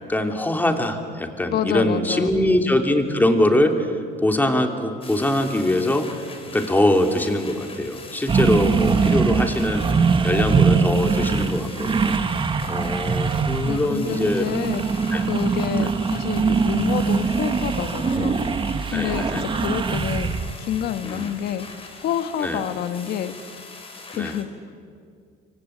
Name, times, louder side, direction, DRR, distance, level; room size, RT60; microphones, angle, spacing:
voice 1, 0.0-6.0 6.5-12.2 12.7-14.4 15.1-15.2 15.8-15.9 18.9-19.4 21.0-21.3 22.4-22.6 24.1-24.4, left 1 dB, 10° left, 4 dB, 2.9 m, -23 dB
voice 2, 1.5-2.3 13.6-21.7 22.0-23.3 24.1-24.5, left 9 dB, 70° left, 9 dB, 1.6 m, -28 dB
sound 1, 5.0-24.4, left 3 dB, 35° left, 5.2 m, -42 dB
sound 2, 8.3-20.5, right 5 dB, 30° right, 1.5 m, -22 dB
26.5 x 24.0 x 8.7 m, 2.2 s
cardioid pair, 110°, 17 cm